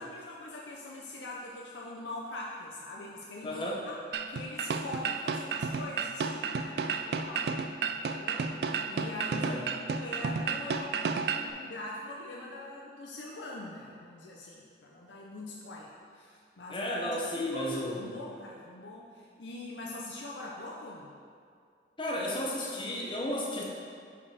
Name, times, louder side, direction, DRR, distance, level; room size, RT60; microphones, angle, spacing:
voice 1, 0.0-3.9 4.3-7.6 7.9-21.1, left 2 dB, 85° left, -3 dB, 0.6 m, -43 dB
voice 2, 3.4-3.8 9.3-9.7 16.7-18.2 22.0-23.6, left 1 dB, 30° left, -2 dB, 0.8 m, -33 dB
sound 1, 4.1-11.5, right 5 dB, 60° right, 0.3 m, -32 dB
5.3 x 4.8 x 4.8 m, 2.3 s
head